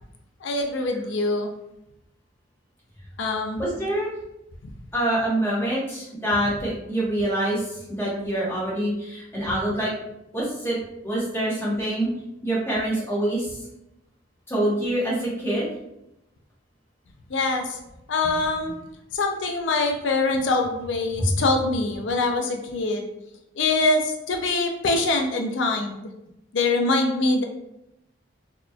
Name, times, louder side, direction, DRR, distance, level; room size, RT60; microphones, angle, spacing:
voice 1, 0.4-1.5 3.2-3.6 4.6-4.7 17.3-17.8 18.1-18.8 19.1-23.1 23.6-26.1 26.5-27.4, left 3 dB, 70° left, 3 dB, 0.4 m, -24 dB
voice 2, 3.6-4.1 4.9-9.9 10.3-10.8 11.0-12.1 12.4-13.5 14.5-15.7 21.2-21.3, right 1 dB, 10° left, -7 dB, 1.1 m, -25 dB
4.0 x 3.0 x 2.2 m, 0.87 s
head